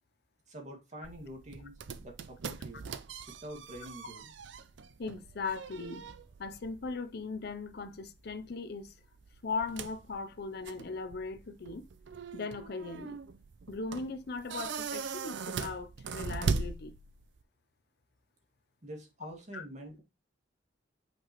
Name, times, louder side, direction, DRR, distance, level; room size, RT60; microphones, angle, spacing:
voice 1, 0.5-2.9 3.3-4.3 18.8-20.0, right 1 dB, 40° right, 2.0 m, -46 dB
sound 1, 1.0-17.4, right 4 dB, 75° right, 0.5 m, -40 dB
voice 2, 5.0-6.1 6.4-8.9 9.4-11.8 12.3-13.2 13.7-16.9 19.5-19.7, left 4 dB, 60° left, 0.6 m, -38 dB
5.8 x 5.3 x 3.0 m
head